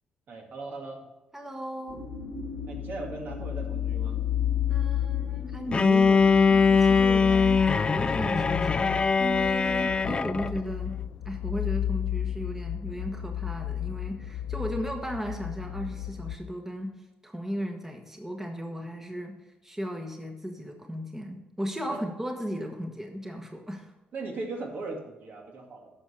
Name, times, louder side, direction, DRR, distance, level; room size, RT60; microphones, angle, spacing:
voice 1, 0.3-1.1 2.7-4.2 21.8-22.0 24.1-25.9, right 3 dB, 60° right, 1 dB, 2.1 m, -38 dB
voice 2, 1.3-2.1 4.7-8.9 9.2-11.0 11.2-17.0 17.2-19.4 19.6-23.9, equal, 10° right, 3 dB, 1.3 m, -35 dB
sound 1, 1.9-16.4, left 11 dB, 85° left, 0.5 m, -33 dB
sound 2, 1.9-9.9, right 1 dB, 40° right, 1.6 m, -45 dB
Bowed string instrument, 5.7-10.6, left 5 dB, 30° left, 0.3 m, -22 dB
10.5 x 6.5 x 4.4 m, 1.1 s
cardioid pair, 80°, 3 cm